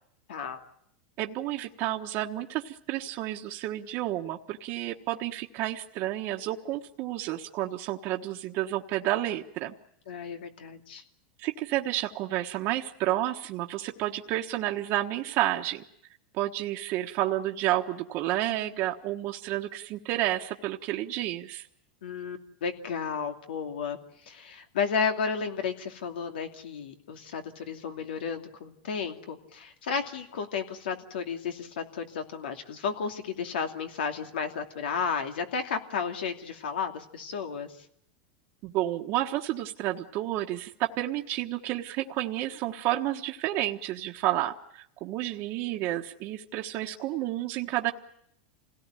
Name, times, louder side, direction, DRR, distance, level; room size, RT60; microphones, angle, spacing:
voice 1, 0.3-0.6 10.1-11.0 22.0-24.0 24.2-37.8, left 6 dB, 85° left, 5 dB, 2.7 m, -33 dB
voice 2, 1.2-9.7 11.4-15.8 16.3-21.7 38.6-47.9, right 14 dB, 45° right, 2 dB, 1.3 m, -30 dB
27.0 x 17.5 x 9.1 m, 0.73 s
supercardioid pair, 135°, 5 cm